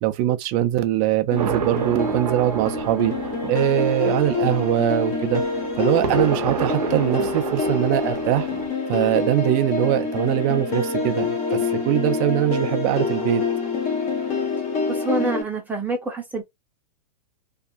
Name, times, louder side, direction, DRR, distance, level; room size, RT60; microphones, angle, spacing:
voice 1, 0.0-3.1 3.5-5.4 5.8-8.5 8.9-13.4, right 13 dB, 35° right, 0.5 m, -22 dB
sound 1, 1.3-15.4, left 4 dB, 30° left, 1.0 m, -26 dB
sound 2, 1.4-8.7, right 8 dB, 75° right, 0.7 m, -30 dB
voice 2, 14.9-16.4, right 2 dB, 10° right, 0.8 m, -26 dB
2.6 x 2.3 x 2.3 m
hypercardioid pair, 135°, 20 cm